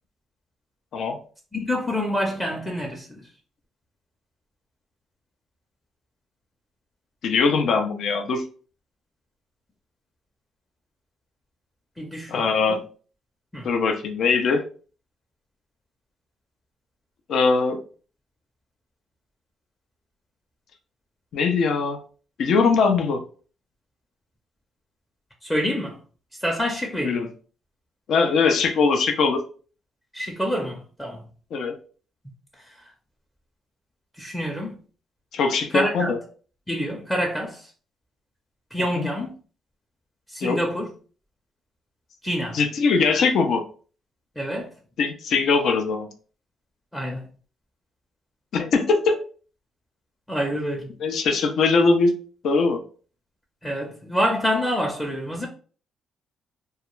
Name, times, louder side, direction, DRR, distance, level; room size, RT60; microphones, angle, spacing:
voice 1, 1.5-3.3 12.0-12.8 13.5-13.7 25.4-26.0 26.4-27.3 30.1-31.2 32.7-32.8 34.2-34.8 35.7-36.1 36.7-37.7 38.7-39.3 40.3-40.9 42.2-42.6 44.4-44.7 46.9-47.2 50.3-50.9 53.6-55.5, equal, 10° left, 0.6 m, -27 dB
voice 2, 7.2-8.4 12.3-12.8 13.6-14.6 17.3-17.8 21.3-22.0 22.4-23.2 27.0-27.3 28.1-29.4 31.5-31.8 35.3-36.2 38.9-39.1 40.4-40.6 42.5-43.6 45.0-46.1 48.5-49.2 51.0-52.1 52.4-52.8, left 4 dB, 70° left, 0.5 m, -21 dB
2.3 x 2.2 x 3.0 m
cardioid pair, 90°, 0 cm